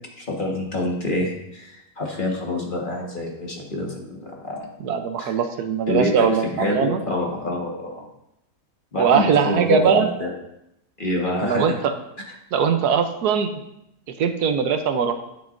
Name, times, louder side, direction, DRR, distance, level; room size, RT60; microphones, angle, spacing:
voice 1, 0.2-4.7 5.2-5.3 5.9-8.1 8.9-10.3 11.0-11.8, left 1 dB, 35° left, -1 dB, 1.6 m, -26 dB
voice 2, 4.8-7.0 9.0-10.1 11.4-11.9 12.5-13.5 14.2-15.2, right 6 dB, 80° right, 7 dB, 1.3 m, -21 dB
10.5 x 9.2 x 2.6 m, 0.82 s
omnidirectional pair, 1.7 m